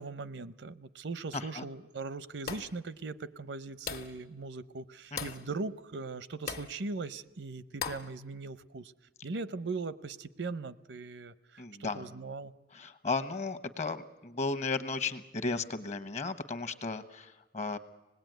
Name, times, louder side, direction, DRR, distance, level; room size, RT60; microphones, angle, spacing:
voice 1, 0.0-8.9 9.2-12.5, right 3 dB, 80° right, 16 dB, 0.7 m, -40 dB
voice 2, 1.3-1.6 5.1-5.3 11.6-12.1 12.7-17.8, left 3 dB, 40° left, 10 dB, 1.1 m, -35 dB
sound 1, 2.5-2.8 3.9-4.2 5.2-5.5 6.5-6.8 7.8-8.1, left 6 dB, 55° left, 1.5 m, -38 dB
26.0 x 19.0 x 9.2 m, 1.1 s
head